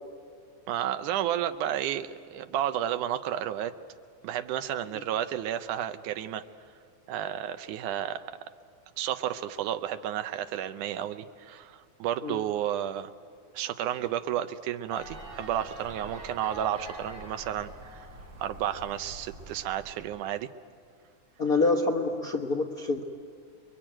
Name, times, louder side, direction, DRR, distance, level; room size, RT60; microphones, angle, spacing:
voice 1, 0.7-3.7 4.2-6.4 7.1-8.4 9.0-13.1 13.5-18.1 18.4-20.5, right 11 dB, 80° right, 9 dB, 2.3 m, -32 dB
sound 1, 14.9-20.2, right 1 dB, 65° right, 5.5 m, -45 dB
voice 2, 21.4-23.0, left 3 dB, 55° left, 0 dB, 0.9 m, -26 dB
29.0 x 22.5 x 8.9 m, 2.2 s
omnidirectional pair, 3.6 m